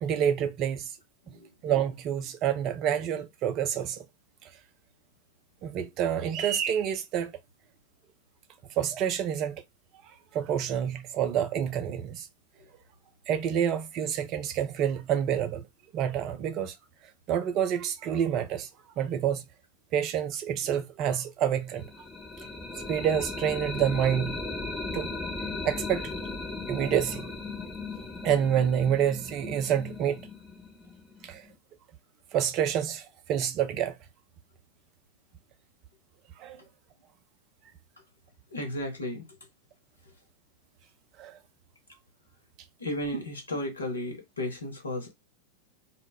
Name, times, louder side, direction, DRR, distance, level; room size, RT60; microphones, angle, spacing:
voice 1, 0.0-0.9 1.6-4.0 5.6-7.3 8.8-9.6 10.3-12.3 13.3-15.6 15.9-16.7 17.3-18.7 19.0-19.4 19.9-21.9 22.9-24.4 24.9-25.1 25.6-26.1 26.7-27.3 28.2-30.2 31.2-31.4 32.3-33.0 33.3-33.9 36.4-36.6 41.2-41.3, right 9 dB, 35° right, 0.4 m, -28 dB
sound 1, 21.8-31.5, left 3 dB, 10° left, 0.7 m, -37 dB
voice 2, 38.5-39.3 42.8-45.1, left 1 dB, 75° left, 0.8 m, -34 dB
2.1 x 2.0 x 3.4 m
figure-of-eight pair, 90°, 0 cm